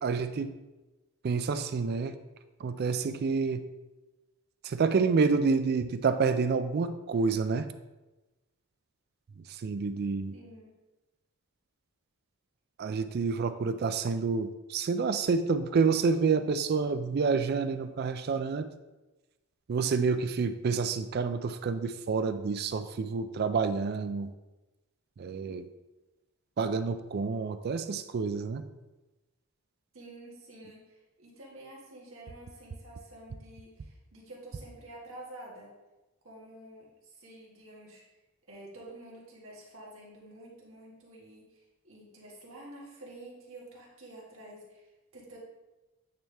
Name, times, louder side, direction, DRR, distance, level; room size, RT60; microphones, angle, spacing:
voice 1, 0.0-0.5 1.2-2.1 2.6-3.7 4.6-7.7 9.4-10.3 12.8-18.7 19.7-24.3 25.2-25.7 26.6-28.6, right 4 dB, 45° right, 11 dB, 0.3 m, -28 dB
voice 2, 10.3-10.7 29.9-35.8 36.2-38.0 38.5-45.4, right 1 dB, 60° right, -4 dB, 1.7 m, -49 dB
8.8 x 3.4 x 3.4 m, 1.1 s
head